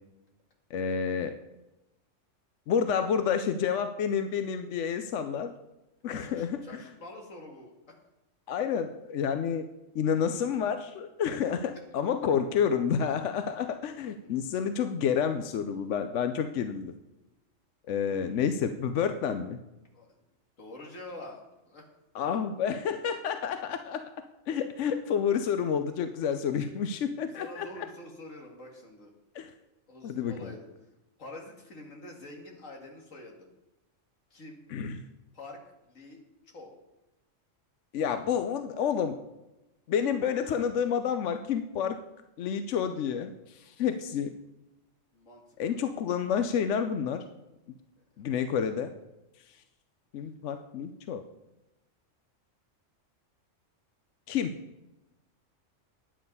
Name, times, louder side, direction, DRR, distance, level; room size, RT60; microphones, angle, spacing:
voice 1, 0.7-1.3 2.7-5.5 6.0-6.6 8.5-9.7 9.9-16.9 17.9-19.6 22.1-24.0 24.5-27.7 29.3-29.5 30.0-30.3 34.7-35.0 37.9-39.2 39.9-42.0 42.4-44.3 45.6-47.2 48.2-48.9 50.1-51.2 54.3-54.6, left 7 dB, 70° left, 9 dB, 1.0 m, -29 dB
voice 2, 6.1-8.0 19.9-20.2 20.6-21.8 27.3-29.1 29.9-30.9 31.2-33.5 34.3-34.6 35.3-36.7 45.1-45.8 48.1-48.2, left 1 dB, 90° left, 1 dB, 2.4 m, -46 dB
10.0 x 8.9 x 5.4 m, 0.98 s
omnidirectional pair, 1.3 m